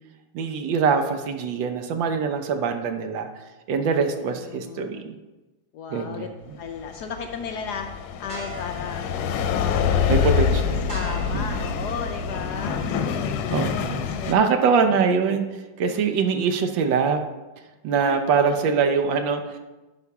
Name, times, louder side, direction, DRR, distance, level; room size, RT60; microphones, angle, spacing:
voice 1, 0.3-3.3 3.7-5.1 5.9-6.3 10.1-10.9 11.3-11.4 13.5-15.5 15.8-17.2 17.8-19.6, right 5 dB, 75° right, 7 dB, 1.4 m, -23 dB
voice 2, 4.4-5.1 5.7-6.3 6.6-9.1 9.5-10.5 10.9-14.5 15.9-16.0 18.0-18.2 18.5-18.6, left 6 dB, 70° left, 5 dB, 1.0 m, -35 dB
sound 1, 6.8-14.3, left 7 dB, 90° left, 1.5 m, -26 dB
sound 2, 8.3-13.4, right 2 dB, 45° right, 1.4 m, -43 dB
11.0 x 4.4 x 4.6 m, 1.1 s
omnidirectional pair, 2.2 m